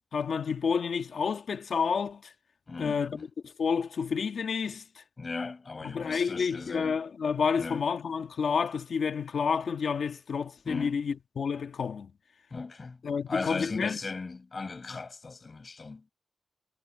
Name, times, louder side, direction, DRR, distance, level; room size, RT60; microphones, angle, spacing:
voice 1, 0.1-2.3 2.8-5.0 5.8-12.1 13.0-14.0, left 6 dB, 80° left, 1.5 m, -30 dB
voice 2, 2.7-3.3 5.2-7.0 7.6-7.9 10.6-11.0 12.5-13.0 13.3-16.1, left 4 dB, 45° left, 5.6 m, -37 dB
wide cardioid pair, 85°, 0 cm